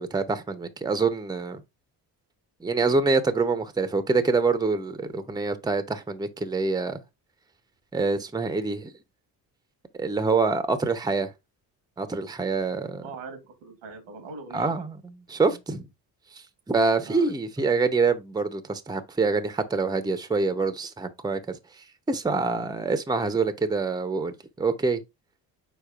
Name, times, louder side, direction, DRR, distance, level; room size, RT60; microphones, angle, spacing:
voice 1, 0.0-1.6 2.6-7.0 7.9-8.9 10.0-11.3 12.0-13.0 14.5-15.0 15.3-15.8 16.7-21.6 22.1-25.0, right 4 dB, 10° right, 0.7 m, -25 dB
voice 2, 13.0-14.8 15.4-15.6 17.0-17.3, right 3 dB, 85° right, 1.3 m, -42 dB
5.0 x 4.1 x 2.4 m
hypercardioid pair, 55°, 47 cm